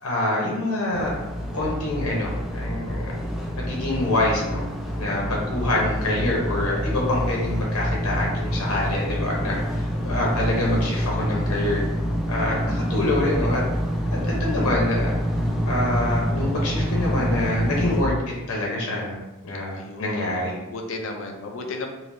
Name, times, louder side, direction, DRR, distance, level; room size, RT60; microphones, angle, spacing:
voice 1, 0.0-1.1 1.5-3.1 3.6-4.6 4.9-11.8 12.3-13.6 14.2-15.1 15.6-18.1 18.5-19.2 19.4-20.6, left 1 dB, 90° left, -3 dB, 0.8 m, -26 dB
sound 1, 0.9-18.0, equal, ahead, 0.3 m, -27 dB
voice 2, 9.9-10.4 19.7-21.9, left 3 dB, 65° left, 3 dB, 0.5 m, -35 dB
3.4 x 2.6 x 2.6 m, 1.0 s
head